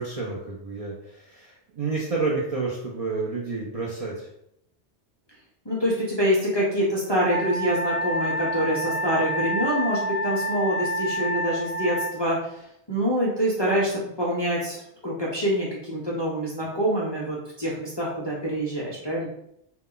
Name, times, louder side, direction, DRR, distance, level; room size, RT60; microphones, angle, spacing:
voice 1, 0.0-4.3, right 3 dB, 70° right, -4 dB, 0.3 m, -30 dB
voice 2, 5.7-12.4 12.9-19.3, equal, 40° left, -7 dB, 0.4 m, -26 dB
Wind instrument woodwind instrument, 7.3-12.2, right 1 dB, 55° right, 0.9 m, -28 dB
2.2 x 2.1 x 3.6 m, 0.76 s
omnidirectional pair, 1.2 m